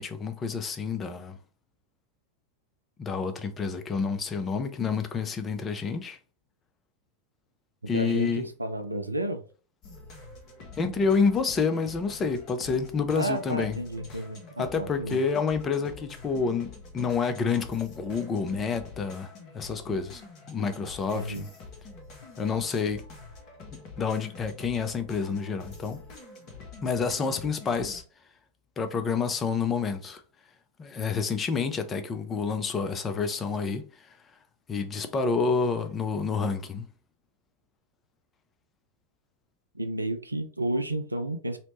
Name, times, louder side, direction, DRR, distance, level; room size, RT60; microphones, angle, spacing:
voice 1, 0.0-1.4 3.0-6.2 7.9-8.5 10.8-13.8 14.6-20.2 20.5-21.5 22.4-23.0 24.0-26.0 26.8-28.0 28.8-30.2 30.8-34.1 34.7-36.9, left 5 dB, 20° left, 0.4 m, -28 dB
voice 2, 7.9-9.4 13.1-15.2 21.1-21.5 39.7-41.6, right 1 dB, 85° right, 0.3 m, -31 dB
sound 1, 9.8-28.0, left 3 dB, 40° left, 0.8 m, -47 dB
2.8 x 2.0 x 3.0 m
figure-of-eight pair, 90°, 0 cm